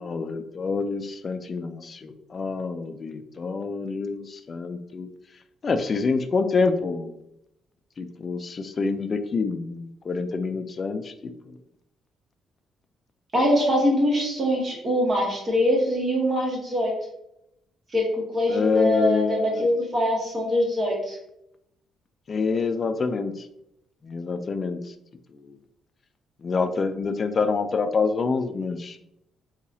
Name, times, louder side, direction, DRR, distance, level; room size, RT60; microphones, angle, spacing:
voice 1, 0.0-5.1 5.6-7.1 8.0-11.1 11.5-11.6 18.5-19.7 22.3-23.3 24.0-24.8 25.5-25.6 26.4-29.0, left 4 dB, 40° left, 9 dB, 0.3 m, -26 dB
voice 2, 13.3-16.9 17.9-21.2, equal, 40° right, -2 dB, 1.4 m, -23 dB
3.9 x 2.8 x 2.6 m, 0.80 s
cardioid pair, 90°, 0 cm